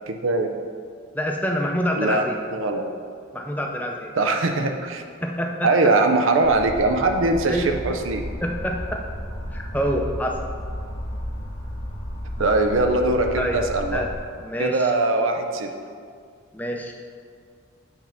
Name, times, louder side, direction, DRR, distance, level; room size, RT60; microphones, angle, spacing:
voice 1, 0.1-0.6 2.0-2.3 2.5-2.9 4.1-5.0 5.6-8.2 12.4-14.0 14.6-15.7, right 2 dB, 75° right, 5 dB, 0.6 m, -21 dB
voice 2, 1.1-2.4 3.3-4.1 5.2-5.7 7.5-7.7 8.4-9.0 9.5-10.4 13.3-13.6 13.9-14.1 14.4-14.9 16.5-16.9, equal, 10° left, 1 dB, 0.5 m, -26 dB
sound 1, 6.4-14.2, equal, 60° left, 1.3 m, -33 dB
8.1 x 3.5 x 5.8 m, 2.2 s
head